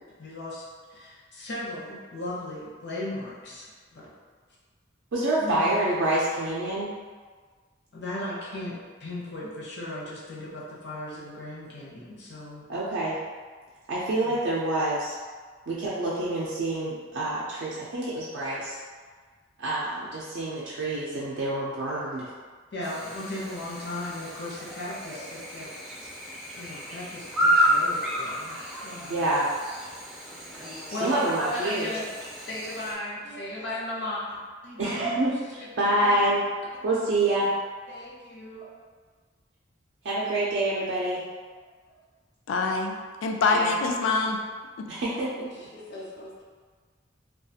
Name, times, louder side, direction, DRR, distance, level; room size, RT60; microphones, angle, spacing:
voice 1, 0.2-4.1 5.4-5.8 7.9-12.7 14.2-14.4 22.7-26.1 26.5-29.3 30.9-32.1 32.5-34.4 34.6-36.3 37.2-37.4 37.9-38.7 45.5-46.4, left 1 dB, 60° left, -5 dB, 0.7 m, -37 dB
voice 2, 5.1-6.9 12.7-13.2 13.9-15.2 15.7-18.7 19.6-22.3 29.1-29.5 31.0-31.9 34.8-36.4 36.8-37.5 40.0-41.2 43.5-43.7 44.9-45.5, right 1 dB, 65° right, -7 dB, 0.4 m, -27 dB
Chirp tweet / Buzz, 22.8-32.9, equal, ahead, 0.4 m, -31 dB
voice 3, 42.5-44.4 44.8-44.9, left 3 dB, 85° left, 3 dB, 0.3 m, -25 dB
2.3 x 2.3 x 2.7 m, 1.5 s
head